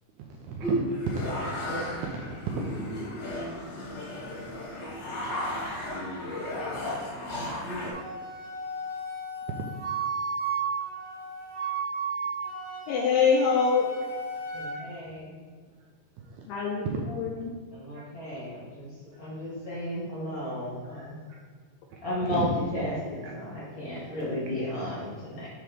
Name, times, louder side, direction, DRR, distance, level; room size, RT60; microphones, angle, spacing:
voice 1, 0.2-0.7 1.8-2.7 14.7-14.9 16.2-16.5 17.2-17.3 17.9-18.1 21.3-21.4 21.9-22.5 23.2-23.3 24.0-24.7, right 6 dB, 85° right, 0 dB, 2.3 m, -37 dB
sound 1, 0.6-7.9, equal, 65° left, 2.0 m, -33 dB
Wind instrument woodwind instrument, 7.9-14.8, right 4 dB, 65° right, 2.0 m, -34 dB
voice 2, 12.9-13.9 16.5-17.5, left 5 dB, 85° left, -2 dB, 2.4 m, -24 dB
voice 3, 14.5-15.3 17.7-18.8 19.2-21.1 22.0-22.4 22.7-25.5, left 1 dB, 45° left, -8 dB, 1.2 m, -34 dB
7.7 x 3.0 x 5.0 m, 1.6 s
omnidirectional pair, 4.8 m